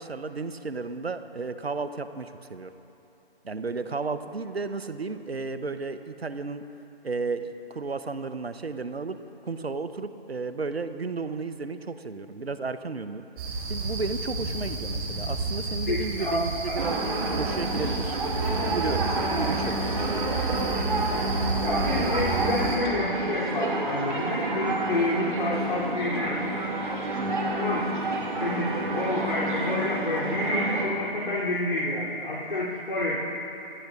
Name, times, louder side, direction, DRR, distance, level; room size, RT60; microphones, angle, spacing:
voice 1, 0.0-2.7 3.4-6.6 7.0-9.2 9.4-13.2 13.7-17.1 17.3-18.2 18.7-20.6 27.2-27.5, right 4 dB, 75° right, 11 dB, 1.0 m, -33 dB
sound 1, 13.4-22.8, right 3 dB, 25° right, 4.4 m, -31 dB
voice 2, 15.9-16.7 21.6-26.6 27.5-28.0 28.4-33.3, left 1 dB, 60° left, -8 dB, 3.4 m, -29 dB
sound 2, 16.8-30.9, right 2 dB, 50° right, 2.5 m, -29 dB
27.0 x 19.5 x 2.6 m, 3.0 s
figure-of-eight pair, 145°, 31 cm